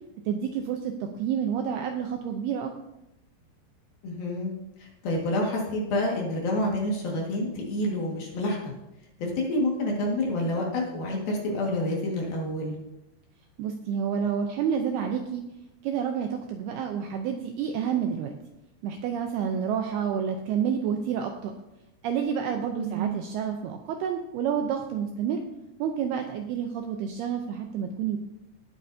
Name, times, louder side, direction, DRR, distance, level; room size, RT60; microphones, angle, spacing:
voice 1, 0.3-2.8 13.6-15.4 15.8-18.3 18.8-21.5 22.0-25.4 25.8-28.2, right 8 dB, 85° right, 4 dB, 2.3 m, -29 dB
voice 2, 4.0-4.5 4.8-8.7 9.2-12.8 22.8-23.1, left 1 dB, 60° left, -2 dB, 3.3 m, -28 dB
18.5 x 8.5 x 2.7 m, 0.90 s
omnidirectional pair, 5.4 m